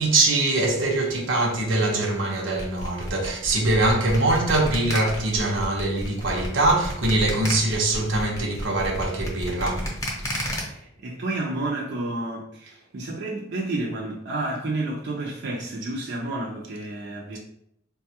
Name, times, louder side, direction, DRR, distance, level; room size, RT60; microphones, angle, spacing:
voice 1, 0.0-9.9, right 2 dB, 85° right, 0.8 m, -23 dB
sound 1, 2.6-10.6, equal, 20° left, 0.8 m, -32 dB
voice 2, 10.7-17.4, right 2 dB, 60° right, 0.6 m, -30 dB
3.9 x 2.3 x 2.8 m
head